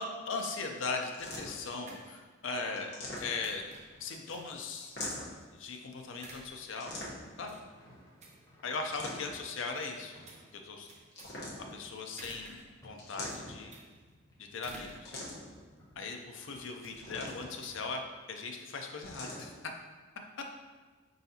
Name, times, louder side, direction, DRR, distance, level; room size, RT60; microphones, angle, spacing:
voice 1, 0.0-2.9 3.2-3.6 4.0-4.9 5.5-6.9 7.4-7.6 8.6-10.2 10.5-10.9 11.7-12.6 12.8-13.7 14.4-15.2 16.0-18.0 18.3-19.5, left 4 dB, 75° left, 3 dB, 0.5 m, -39 dB
sound 1, 0.6-18.6, right 2 dB, 35° right, 0.5 m, -56 dB
sound 2, 1.1-1.7 2.8-3.6 4.8-5.5 6.8-7.4 8.7-9.5 11.1-11.9 13.0-13.7 15.0-15.6 16.9-17.6 19.0-19.5, left 1 dB, 50° left, 0.9 m, -42 dB
sound 3, 3.9-4.8 5.1-5.3 5.5-6.6 7.1-9.6 10.1-11.0 11.6-11.7 12.5-14.5 15.0-17.8, equal, 15° left, 0.8 m, -60 dB
4.8 x 3.9 x 2.7 m, 1.4 s
head